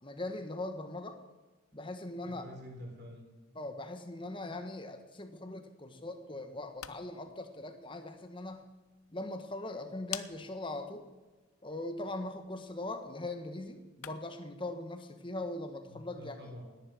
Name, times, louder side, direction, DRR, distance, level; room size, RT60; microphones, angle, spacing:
voice 1, 0.0-1.2 1.7-2.4 3.5-8.7 9.1-11.1 11.6-16.3, left 2 dB, 25° left, 7 dB, 1.3 m, -40 dB
voice 2, 2.1-3.2 15.9-16.6, left 1 dB, 50° right, 1 dB, 4.0 m, -48 dB
sound 1, 6.5-14.5, left 12 dB, 85° left, 0.7 m, -51 dB
18.0 x 10.5 x 6.3 m, 1.2 s
head